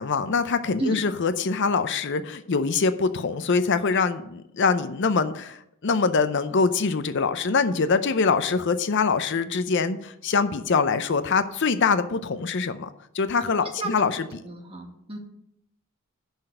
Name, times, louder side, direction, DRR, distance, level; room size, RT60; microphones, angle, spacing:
voice 1, 0.0-12.9 13.1-14.4, left 4 dB, 55° left, 10 dB, 0.6 m, -24 dB
voice 2, 14.4-15.2, right 2 dB, 25° right, 2 dB, 1.7 m, -31 dB
11.0 x 4.1 x 7.6 m, 0.78 s
head